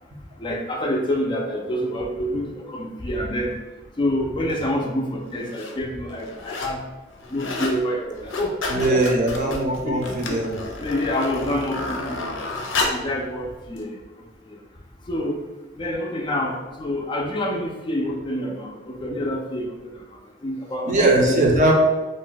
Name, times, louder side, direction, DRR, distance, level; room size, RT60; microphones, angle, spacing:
voice 1, 0.4-3.6 4.0-6.9 7.3-9.1 9.8-10.4 10.8-12.4 12.9-14.6 15.0-15.5 15.7-21.5, left 1 dB, 25° left, 1 dB, 0.3 m, -27 dB
sound 1, 4.5-4.6 5.3-5.8 6.1-6.8 7.1-7.8 8.1-13.1 13.8-13.9, left 2 dB, 90° left, 0.5 m, -30 dB
voice 2, 8.7-10.6 20.9-21.7, right 1 dB, 40° right, 0 dB, 0.5 m, -20 dB
2.5 x 2.1 x 3.7 m, 1.2 s
head